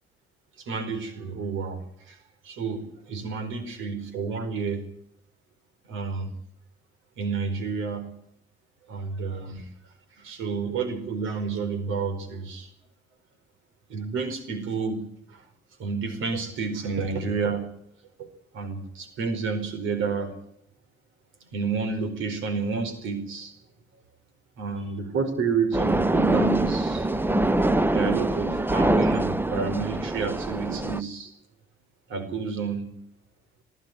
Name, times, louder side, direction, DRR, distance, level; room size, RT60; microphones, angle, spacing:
voice 1, 0.7-1.8 2.1-2.2 2.4-4.8 5.9-6.3 7.2-8.1 8.9-9.7 10.2-12.7 13.9-15.4 15.8-17.7 18.5-20.3 21.5-23.5 24.6-27.1 27.9-31.3 32.1-32.9, right 5 dB, 85° right, 10 dB, 4.6 m, -30 dB
sound 1, 25.7-31.0, right 1 dB, 10° right, 0.9 m, -24 dB
23.0 x 13.5 x 9.9 m, 0.72 s
cardioid pair, 90°, 20 cm